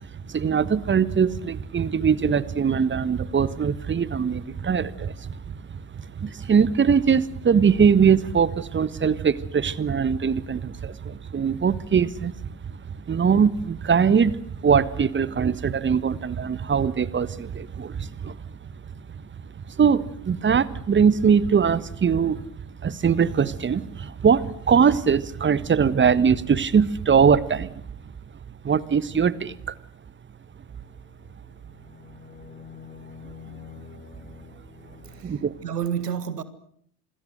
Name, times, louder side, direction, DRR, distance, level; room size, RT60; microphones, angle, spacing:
voice 1, 0.3-12.3 12.6-12.8 13.1-18.4 19.8-22.5 22.8-27.8 28.6-29.7 35.2-35.5, right 6 dB, 25° right, 1.4 m, -22 dB
sound 1, 30.8-35.2, left 7 dB, 20° left, 3.3 m, -46 dB
voice 2, 35.0-36.4, right 8 dB, 80° right, 1.9 m, -30 dB
27.5 x 20.5 x 7.9 m
figure-of-eight pair, 60°, 48 cm